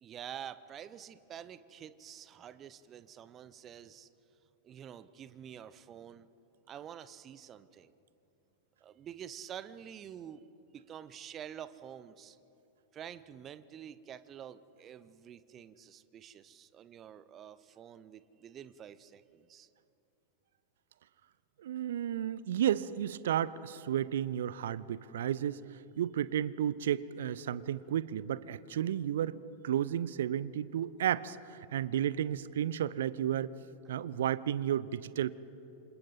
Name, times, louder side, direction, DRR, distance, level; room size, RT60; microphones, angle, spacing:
voice 1, 0.0-4.1 4.6-6.3 6.7-7.9 8.8-10.4 10.7-12.4 12.9-19.7, right 9 dB, 30° right, 15 dB, 0.8 m, -48 dB
voice 2, 21.6-29.4 29.6-33.6 33.9-35.3, right 10 dB, 60° right, 19 dB, 0.6 m, -32 dB
28.5 x 26.5 x 4.2 m, 2.8 s
figure-of-eight pair, 90°, 0 cm